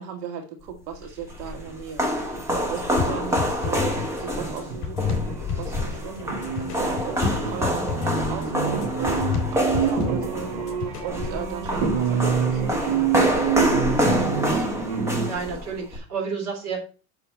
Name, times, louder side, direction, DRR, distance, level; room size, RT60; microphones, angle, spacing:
voice 1, 0.0-2.1 2.7-7.9 8.3-14.7, right 7 dB, 90° right, 3 dB, 1.9 m, -37 dB
sound 1, 0.9-16.0, equal, 5° right, 0.9 m, -27 dB
sound 2, 2.3-5.5 5.8-15.3, right 7 dB, 60° right, 2.0 m, -28 dB
sound 3, 3.0-11.4, left 6 dB, 35° left, 3.1 m, -31 dB
voice 2, 15.1-16.8, right 5 dB, 35° right, 0 dB, 3.3 m, -31 dB
6.9 x 6.8 x 4.5 m, 0.36 s
supercardioid pair, 170°, 47 cm